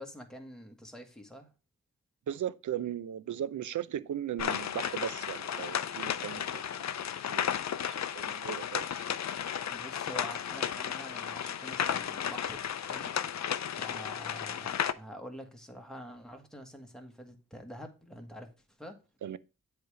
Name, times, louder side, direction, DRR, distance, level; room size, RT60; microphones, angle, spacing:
voice 1, 0.0-1.5 9.7-12.6 12.9-13.1 13.7-18.5 18.8-19.0, equal, ahead, 1.6 m, -46 dB
voice 2, 2.3-6.9 7.3-7.5 8.1-9.0 19.2-19.4, right 10 dB, 65° right, 0.5 m, -37 dB
sound 1, 4.4-14.9, left 9 dB, 55° left, 0.5 m, -34 dB
7.8 x 3.4 x 4.8 m
cardioid pair, 45°, 33 cm